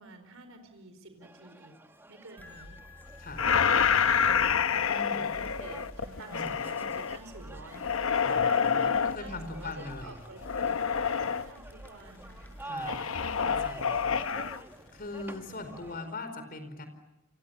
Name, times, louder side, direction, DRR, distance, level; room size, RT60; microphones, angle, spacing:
voice 1, 0.0-1.8 2.1-2.8 4.3-10.4 10.8-13.1 13.8-14.2 15.2-15.7, right 2 dB, 70° right, 7 dB, 4.6 m, -49 dB
sound 1, 1.2-16.2, right 2 dB, 10° right, 1.6 m, -49 dB
sound 2, 2.4-15.9, equal, 10° left, 6.0 m, -50 dB
voice 2, 3.2-3.5 4.8-5.2 6.3-6.5 8.2-10.2 12.6-13.0 13.5-14.2 14.9-16.9, left 2 dB, 45° left, 9 dB, 4.7 m, -40 dB
sound 3, 3.4-7.2 7.7-9.2 10.4-11.5 12.8-14.6, left 6 dB, 65° left, 1.0 m, -27 dB
30.0 x 25.5 x 7.1 m, 0.92 s
head